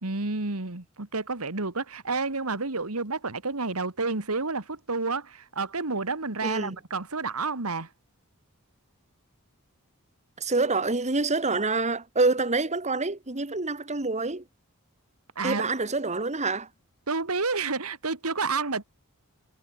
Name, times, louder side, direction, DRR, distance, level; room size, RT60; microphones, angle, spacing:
voice 1, 0.0-7.9 15.4-15.6 17.1-18.8, right 3 dB, 85° right, 2.2 m, -30 dB
voice 2, 10.4-14.4 15.4-16.7, right 3 dB, 35° right, 2.1 m, -26 dB
head